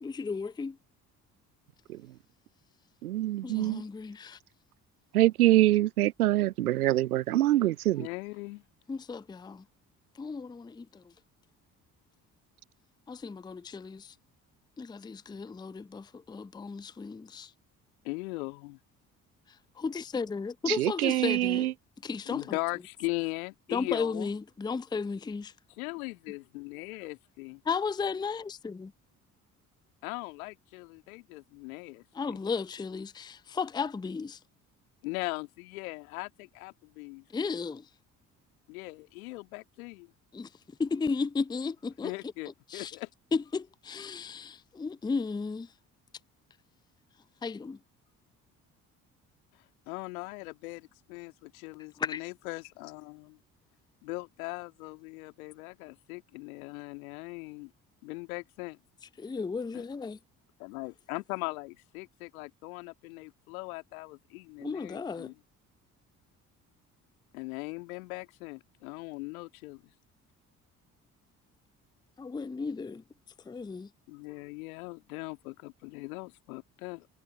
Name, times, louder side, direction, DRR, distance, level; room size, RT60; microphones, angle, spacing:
voice 1, 0.0-0.8 3.4-4.4 8.9-9.6 10.2-11.1 13.1-14.1 14.8-17.5 19.8-21.7 22.0-22.6 23.7-25.5 27.7-28.9 32.1-34.4 37.3-37.9 40.3-42.1 42.7-42.9 43.3-45.7 47.4-47.8 52.0-52.2 59.2-60.2 64.6-65.3 72.2-73.0 73.5-73.9, left 5 dB, 10° left, 0.5 m, -34 dB
voice 2, 3.0-3.8 5.1-8.1 20.7-21.7, right 15 dB, 85° right, 0.5 m, -25 dB
voice 3, 8.0-8.6 18.0-18.8 22.3-24.3 25.8-27.6 30.0-32.4 35.0-37.2 38.7-40.1 42.0-43.1 49.9-53.4 54.0-57.7 58.0-58.8 59.7-59.8 60.6-65.3 67.3-69.8 74.1-77.1, left 24 dB, 75° left, 2.2 m, -39 dB
figure-of-eight pair, 45°, 43 cm